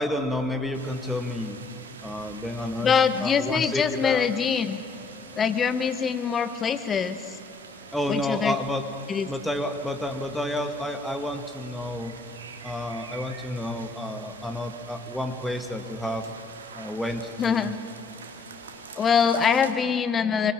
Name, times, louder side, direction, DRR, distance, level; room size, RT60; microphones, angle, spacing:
voice 1, 0.0-1.6 2.0-4.3 7.9-8.8 9.3-12.1 12.6-16.3 16.8-17.7, left 1 dB, ahead, 5 dB, 2.0 m, -30 dB
sound 1, 0.7-19.7, right 5 dB, 65° right, 2.1 m, -45 dB
voice 2, 2.8-4.8 5.4-7.4 8.1-8.6 9.1-9.3 17.4-17.8 19.0-20.5, left 7 dB, 20° left, 11 dB, 1.2 m, -24 dB
24.5 x 20.0 x 9.0 m, 2.7 s
figure-of-eight pair, 90°, 0 cm